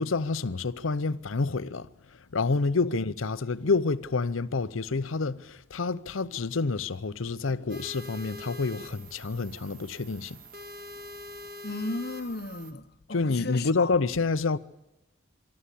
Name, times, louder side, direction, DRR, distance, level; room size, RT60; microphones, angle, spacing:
voice 1, 0.0-1.9 2.3-10.4 13.1-14.6, left 4 dB, 85° left, 0.7 m, -28 dB
sound 1, 7.7-12.7, left 1 dB, 45° right, 1.9 m, -44 dB
voice 2, 11.6-13.9, left 2 dB, 50° left, 1.1 m, -35 dB
25.0 x 13.0 x 8.4 m
head